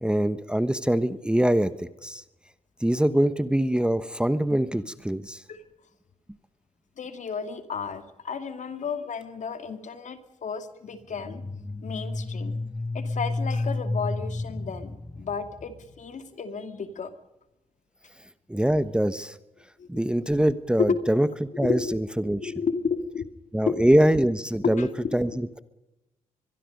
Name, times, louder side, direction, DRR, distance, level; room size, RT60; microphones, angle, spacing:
voice 1, 0.0-2.2 2.8-5.4 18.5-19.4 19.9-21.3 21.6-22.5 23.5-24.9 25.1-25.6, right 1 dB, 5° right, 13 dB, 1.1 m, -23 dB
voice 2, 7.0-11.4 11.8-12.6 12.9-17.1 19.8-19.9 20.8-21.0 21.5-21.9 22.4-23.3 23.7-23.9 24.6-25.4, left 5 dB, 60° left, 9 dB, 2.4 m, -32 dB
sound 1, 11.1-15.9, left 2 dB, 20° left, 2.4 m, -31 dB
24.0 x 22.5 x 5.4 m, 0.95 s
cardioid pair, 65°, 14 cm